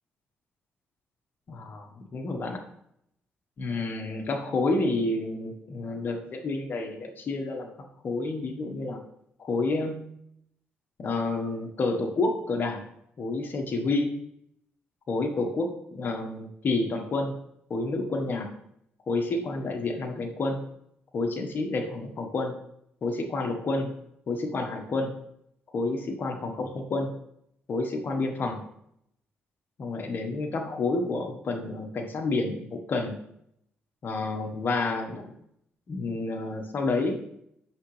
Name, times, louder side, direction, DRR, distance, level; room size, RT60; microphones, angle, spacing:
voice 1, 1.5-2.6 3.6-7.7 8.0-9.0 9.4-10.1 11.0-12.8 13.2-14.1 15.1-17.3 17.7-18.5 19.1-20.6 21.1-22.5 23.0-24.0 24.3-25.1 25.7-27.1 27.7-28.6 29.8-33.2 34.0-35.3 35.9-37.1, left 3 dB, 50° left, 3 dB, 1.4 m, -29 dB
9.0 x 7.1 x 3.3 m, 0.74 s
cardioid pair, 90°, 4 cm